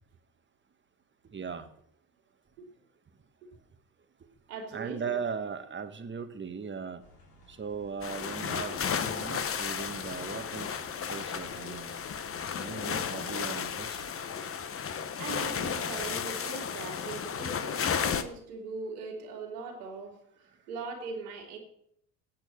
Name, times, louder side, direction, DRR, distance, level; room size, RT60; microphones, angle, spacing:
voice 1, 1.2-1.7 4.7-7.0 7.5-10.8 11.1-12.0 12.6-14.1, right 6 dB, 25° right, 9 dB, 1.4 m, -38 dB
voice 2, 4.5-5.2 15.2-21.6, right 4 dB, 80° right, -1 dB, 2.8 m, -40 dB
sound 1, 7.0-14.1, right 1 dB, 85° left, 3.1 m, -58 dB
sound 2, 8.0-18.2, left 7 dB, 30° left, 1.1 m, -33 dB
9.3 x 7.6 x 7.3 m, 0.70 s
hypercardioid pair, 65°, 45 cm